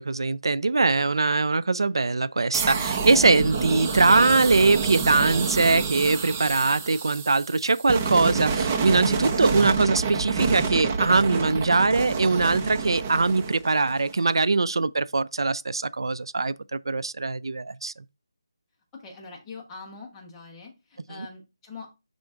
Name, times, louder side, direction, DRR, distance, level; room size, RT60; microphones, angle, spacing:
voice 1, 0.0-17.9 21.1-21.3, right 3 dB, 85° right, 0.3 m, -22 dB
sound 1, 2.5-14.3, right 5 dB, 15° right, 0.4 m, -28 dB
voice 2, 19.0-20.7 21.1-21.9, left 4 dB, 10° left, 0.9 m, -42 dB
10.5 x 3.7 x 2.4 m
figure-of-eight pair, 175°, 2 cm